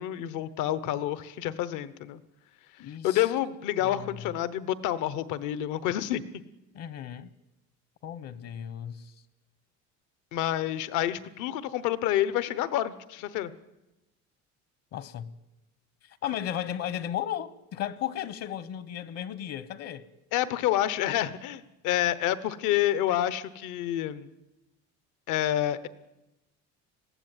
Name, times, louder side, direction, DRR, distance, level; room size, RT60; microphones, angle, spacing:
voice 1, 0.0-2.2 3.0-6.2 10.3-13.5 20.3-24.3 25.3-25.9, left 12 dB, 75° left, 1.2 m, -28 dB
voice 2, 2.8-3.3 3.8-4.2 6.7-7.3 8.0-9.1 14.9-15.3 16.0-20.1, left 10 dB, 55° left, 1.1 m, -35 dB
20.5 x 15.5 x 9.2 m
cardioid pair, 150°, 30 cm